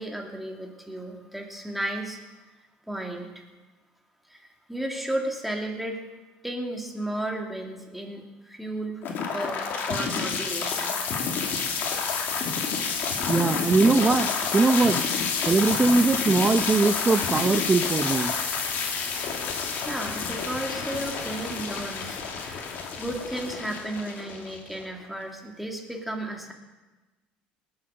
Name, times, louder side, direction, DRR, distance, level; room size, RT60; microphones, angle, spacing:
voice 1, 0.0-2.2 2.9-3.4 4.3-6.0 6.4-11.0 19.8-22.7 23.0-26.5, right 1 dB, 5° right, 1 dB, 2.8 m, -34 dB
sound 1, 9.0-25.0, left 5 dB, 55° left, 2.7 m, -29 dB
voice 2, 13.3-15.0 15.5-18.3, right 3 dB, 25° right, 8 dB, 0.7 m, -21 dB
19.5 x 8.0 x 6.5 m, 1.2 s
supercardioid pair, 90°, 4 cm